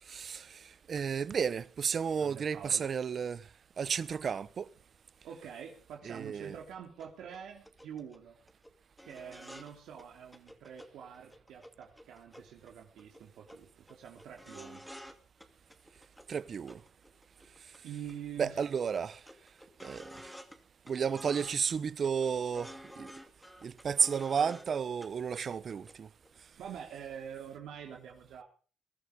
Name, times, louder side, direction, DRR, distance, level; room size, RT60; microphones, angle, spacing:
voice 1, 0.1-3.5 3.8-4.7 6.0-6.5 16.3-16.8 18.4-19.2 19.8-20.1 20.9-23.1 23.6-26.1, right 6 dB, 50° right, 0.9 m, -32 dB
voice 2, 2.2-2.9 5.2-8.4 9.0-14.8 17.8-18.6 22.7-22.8 26.6-28.4, right 8 dB, 80° right, 3.4 m, -46 dB
sound 1, 7.0-7.1 7.3-7.4 7.6-8.2 8.5-8.7 9.0-9.7 10.0-10.1 10.3-10.9 11.1-12.7 13.0-13.2 13.5-13.6 13.9-15.1 15.4-16.3 16.7-17.8 18.1-18.2 18.4-20.6 20.9-21.7 22.0-24.7 25.0-25.1 25.4-25.9 26.2-26.3, equal, ahead, 2.4 m, -50 dB
21.5 x 11.5 x 5.3 m
cardioid pair, 90°, 0 cm